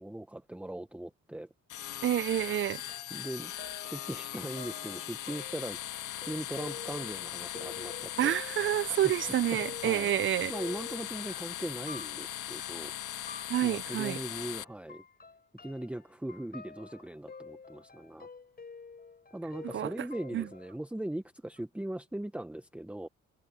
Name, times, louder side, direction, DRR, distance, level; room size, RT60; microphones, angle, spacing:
voice 1, 0.0-1.5 3.1-5.8 6.2-8.3 8.9-9.0 9.5-10.1 10.5-12.9 13.6-15.0 15.6-18.3 19.3-23.1, right 1 dB, 5° right, 1.0 m, -40 dB
sound 1, 1.7-14.6, left 13 dB, 80° left, 1.8 m, -39 dB
voice 2, 2.0-2.8 8.2-10.5 13.5-14.2 19.7-19.9 20.3-20.5, right 12 dB, 40° right, 0.4 m, -28 dB
sound 2, 2.4-20.7, left 4 dB, 30° left, 5.8 m, -49 dB
cardioid pair, 90°, 30 cm